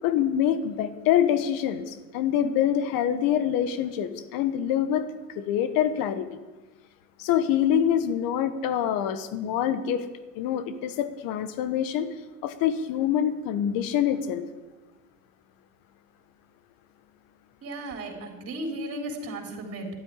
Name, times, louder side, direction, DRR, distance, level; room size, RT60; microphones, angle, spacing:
voice 1, 0.0-6.3 7.2-10.0 10.3-12.1 12.4-14.4, left 9 dB, 60° left, 12 dB, 1.4 m, -25 dB
voice 2, 17.6-20.0, right 1 dB, 40° right, 2 dB, 3.8 m, -35 dB
12.0 x 8.6 x 10.0 m, 1.2 s
supercardioid pair, 100°, 38 cm